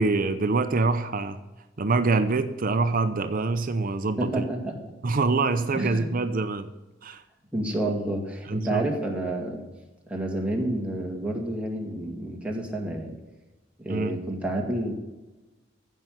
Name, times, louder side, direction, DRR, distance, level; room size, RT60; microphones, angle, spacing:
voice 1, 0.0-1.4 1.8-4.4 5.0-6.7 7.0-7.2 8.5-8.8 13.9-14.1, right 3 dB, 45° right, 10 dB, 0.7 m, -25 dB
voice 2, 4.2-4.9 5.7-6.1 7.5-9.6 10.1-13.2 13.8-14.9, right 1 dB, 5° right, 0 dB, 2.4 m, -29 dB
15.0 x 5.6 x 9.4 m, 1.1 s
head